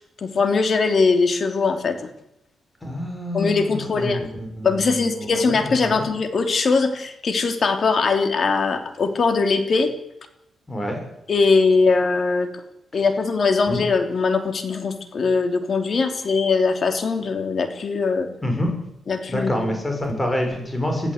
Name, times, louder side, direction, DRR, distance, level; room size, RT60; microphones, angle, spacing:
voice 1, 0.2-2.0 3.3-4.3 4.6-9.9 11.3-12.6 12.9-18.3 19.1-19.7, left 4 dB, 55° left, 6 dB, 3.0 m, -21 dB
voice 2, 2.8-5.7 5.9-6.1 10.7-11.0 13.7-13.8 18.4-18.7 19.3-21.1, left 1 dB, 20° left, 3 dB, 6.4 m, -27 dB
21.5 x 15.0 x 8.3 m, 0.81 s
cardioid pair, 75°, 0 cm